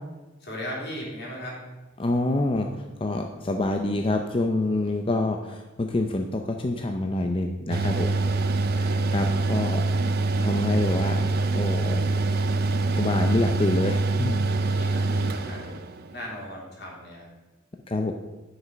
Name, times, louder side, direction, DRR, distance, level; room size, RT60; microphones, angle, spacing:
voice 1, 0.4-1.6 14.7-15.8 16.1-17.3, equal, 60° left, -3 dB, 3.3 m, -37 dB
voice 2, 2.0-2.7 3.0-8.1 8.7-9.8 10.4-12.0 12.9-14.4 17.9-18.1, left 2 dB, 30° left, 4 dB, 0.5 m, -26 dB
Mechanical fan, 7.7-16.1, right 3 dB, 55° right, 0.6 m, -25 dB
9.9 x 6.4 x 5.1 m, 1.1 s
head